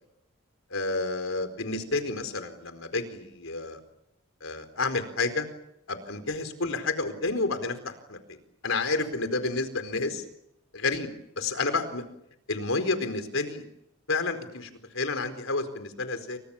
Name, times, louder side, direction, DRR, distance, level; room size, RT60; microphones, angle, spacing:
voice 1, 0.7-3.8 4.4-5.5 5.9-8.4 8.6-10.2 10.7-11.1 11.4-12.0 12.5-13.6 14.1-16.4, left 3 dB, 80° left, 9 dB, 4.5 m, -30 dB
30.0 x 26.0 x 7.2 m, 0.78 s
head